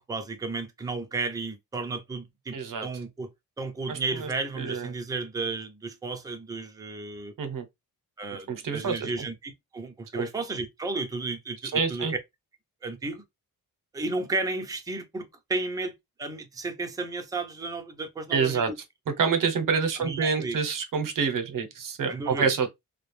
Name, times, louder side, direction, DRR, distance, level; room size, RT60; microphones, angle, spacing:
voice 1, 0.0-2.6 2.8-3.3 3.6-7.3 8.2-12.2 12.8-13.2 13.9-15.9 16.2-18.7 20.0-20.6 22.1-22.5, right 3 dB, 10° right, 0.5 m, -33 dB
voice 2, 2.5-2.9 3.9-4.3 4.6-4.9 7.4-7.6 8.5-9.1 10.1-10.3 11.7-12.1 18.3-18.7 19.1-22.7, right 5 dB, 60° right, 0.7 m, -27 dB
2.3 x 2.0 x 3.1 m
cardioid pair, 95°, 36 cm